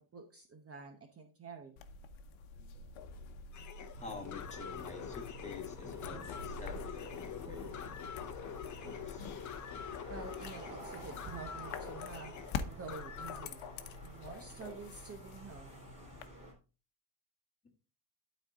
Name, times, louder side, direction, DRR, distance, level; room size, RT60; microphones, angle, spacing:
voice 1, 0.0-1.8 7.4-7.8 10.1-13.7 14.0-15.8, right 4 dB, 30° right, 6 dB, 0.9 m, -49 dB
sound 1, 1.8-16.3, left 5 dB, 70° left, 1.0 m, -47 dB
sound 2, 3.5-13.5, left 8 dB, 35° left, 0.8 m, -46 dB
voice 2, 4.0-8.5 8.8-9.4, left 3 dB, 15° left, 1 dB, 1.9 m, -49 dB
sound 3, 4.0-16.5, right 1 dB, 15° right, 3.3 m, -52 dB
12.0 x 4.3 x 3.7 m, 0.34 s
cardioid pair, 150°, 49 cm